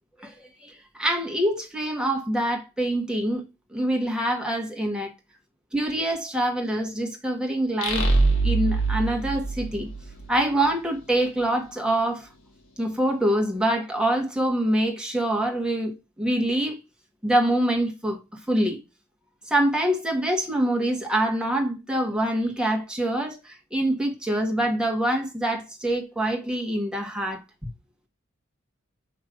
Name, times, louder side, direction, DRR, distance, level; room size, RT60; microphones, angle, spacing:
voice 1, 0.2-3.4 3.7-5.1 5.7-8.1 8.4-9.9 10.3-12.3 12.8-16.8 17.2-18.8 19.5-27.4, right 1 dB, 5° right, 1.3 m, -25 dB
sound 1, 7.8-10.4, right 3 dB, 70° left, 1.6 m, -23 dB
6.5 x 3.1 x 4.8 m
head